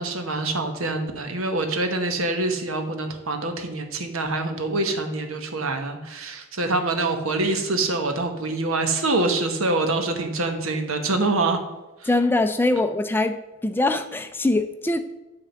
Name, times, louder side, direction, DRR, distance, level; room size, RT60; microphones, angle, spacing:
voice 1, 0.0-11.6 12.0-12.1, right 2 dB, 90° right, 6 dB, 1.1 m, -25 dB
voice 2, 12.1-13.4 13.6-15.0, left 2 dB, 10° left, 8 dB, 0.4 m, -22 dB
9.2 x 3.7 x 6.9 m, 1.1 s
head